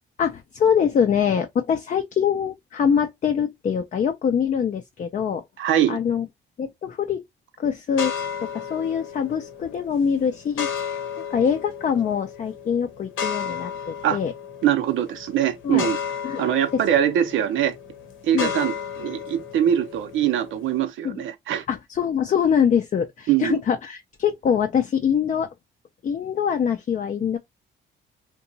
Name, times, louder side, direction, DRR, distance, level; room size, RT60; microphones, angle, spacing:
voice 1, 0.2-5.4 5.9-6.3 6.6-7.2 7.6-8.1 8.4-11.0 11.3-14.3 15.6-15.9 16.2-16.4 16.7-16.8 18.3-18.5 21.0-21.2 21.7-25.5 26.0-27.4, left 7 dB, 40° left, 0.4 m, -24 dB
voice 2, 5.6-6.0 14.0-14.2 14.6-16.0 16.4-17.7 18.2-21.6 23.3-23.6, right 10 dB, 80° right, 0.7 m, -22 dB
sound 1, 7.9-20.8, left 7 dB, 80° left, 0.8 m, -34 dB
2.8 x 2.2 x 2.6 m
cardioid pair, 90°, 20 cm